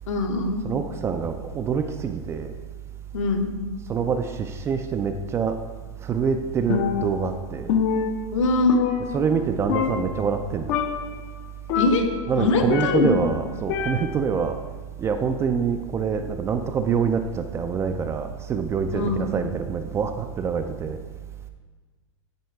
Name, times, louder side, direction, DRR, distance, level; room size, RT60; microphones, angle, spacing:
voice 1, 0.1-0.6 3.1-3.5 8.3-8.8 11.7-12.0 12.4-13.2 18.9-19.2, left 3 dB, 70° left, 1.2 m, -22 dB
voice 2, 0.6-2.5 3.9-5.6 6.0-7.7 9.1-10.8 12.3-14.6 15.0-21.0, right 6 dB, 15° right, 0.3 m, -25 dB
Percussion, 6.7-7.4 7.7-9.4 9.7-10.4 10.7-11.2 11.7-13.3 13.7-14.4, left 7 dB, 50° left, 0.6 m, -26 dB
9.4 x 4.3 x 4.6 m
hypercardioid pair, 135°, 17 cm